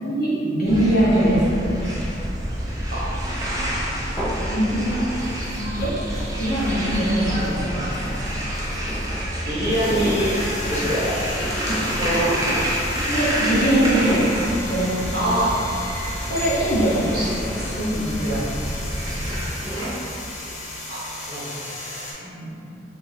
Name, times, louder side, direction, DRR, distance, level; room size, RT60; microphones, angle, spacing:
voice 1, 0.0-1.5 4.5-5.0 5.5-6.0 6.4-8.1 11.7-12.2 13.1-14.3 14.7-15.0 16.3-17.0 17.7-18.4 19.1-19.3 22.2-22.6, right 1 dB, 60° left, -8 dB, 1.0 m, -22 dB
sound 1, 0.7-19.5, equal, 20° right, 0.5 m, -28 dB
sound 2, 4.0-4.8 5.2-20.2, equal, 20° left, 1.1 m, -36 dB
sound 3, 5.8-7.4 7.7-22.1, left 2 dB, 40° left, 0.7 m, -35 dB
voice 2, 9.4-10.4 10.7-11.1 11.7-12.3 12.6-12.8 15.1-15.5 16.8-17.4 18.2-18.3 20.9-21.7, right 1 dB, 55° right, -9 dB, 1.1 m, -25 dB
2.8 x 2.7 x 4.0 m, 2.9 s
head